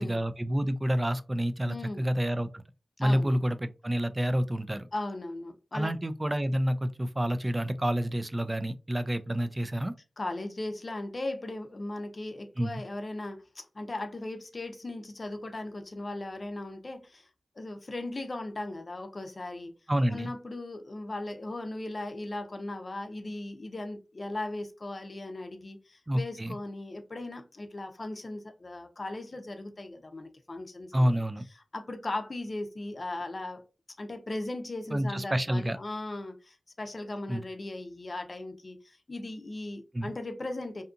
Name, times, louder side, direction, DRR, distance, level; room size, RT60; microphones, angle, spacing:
voice 1, 0.0-2.6 3.0-4.9 5.7-9.9 12.6-12.8 19.9-20.3 26.1-26.6 30.9-31.4 34.9-35.8 37.3-37.4 39.9-40.1, equal, 25° right, 0.3 m, -28 dB
voice 2, 1.7-2.0 3.0-3.3 4.9-5.9 10.2-17.3 17.6-19.7 20.1-31.3 31.7-33.6 34.0-40.8, left 2 dB, 50° left, 0.5 m, -38 dB
2.7 x 2.4 x 2.4 m
cardioid pair, 50°, 0 cm